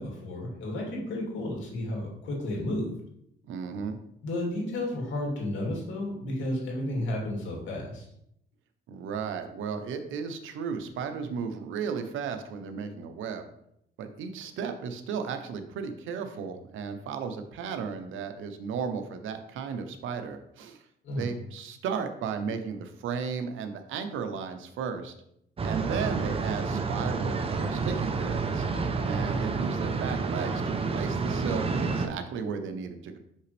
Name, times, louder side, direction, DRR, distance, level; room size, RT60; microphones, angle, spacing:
voice 1, 0.0-2.9 4.2-8.1 21.0-21.3, left 1 dB, 70° left, -1 dB, 2.5 m, -32 dB
voice 2, 3.5-4.0 8.9-13.4 14.0-20.8 21.2-25.1 25.6-28.7 29.0-33.2, right 6 dB, 80° right, 8 dB, 0.8 m, -34 dB
sound 1, 25.6-32.1, right 4 dB, 30° right, 0.7 m, -29 dB
6.0 x 5.5 x 3.3 m, 0.75 s
cardioid pair, 100°, 20 cm